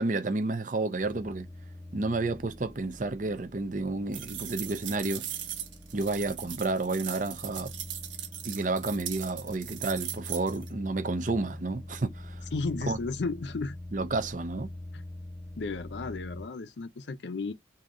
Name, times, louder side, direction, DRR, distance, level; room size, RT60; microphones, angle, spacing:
voice 1, 0.0-1.5 1.9-5.2 5.9-7.7 8.4-12.5 12.8-13.0 13.9-14.7, right 3 dB, 45° right, 0.6 m, -31 dB
sound 1, 1.0-16.5, left 1 dB, 5° left, 1.4 m, -44 dB
sound 2, 4.1-10.7, right 10 dB, 85° right, 1.2 m, -39 dB
voice 2, 12.5-13.8 14.9-15.0 15.6-17.5, left 3 dB, 70° left, 0.5 m, -33 dB
3.8 x 2.7 x 4.8 m
head